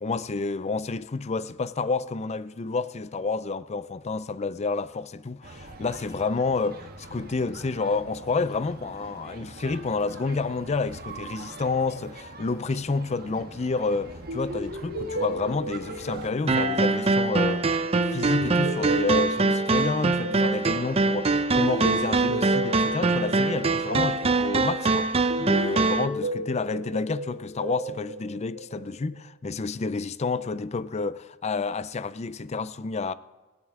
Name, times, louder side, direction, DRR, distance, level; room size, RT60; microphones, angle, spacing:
voice 1, 0.0-17.7 18.1-25.1 25.4-33.1, left 3 dB, 30° left, 0.5 m, -29 dB
sound 1, 5.4-16.3, right 3 dB, 45° right, 1.3 m, -44 dB
sound 2, 14.3-29.0, equal, 65° right, 2.7 m, -35 dB
sound 3, 16.5-26.1, right 3 dB, 30° right, 0.6 m, -23 dB
18.0 x 16.5 x 3.7 m
head